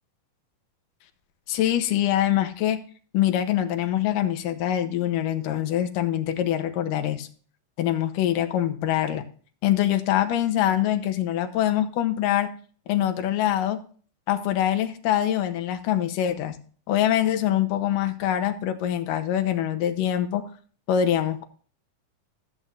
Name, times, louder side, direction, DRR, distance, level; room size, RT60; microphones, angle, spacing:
voice 1, 1.5-2.8 3.1-7.3 7.8-9.2 9.6-12.5 12.9-13.8 14.3-16.6 16.9-20.4 20.9-21.5, left 11 dB, 80° left, 9 dB, 2.4 m, -24 dB
14.0 x 8.3 x 2.6 m, 0.43 s
omnidirectional pair, 3.9 m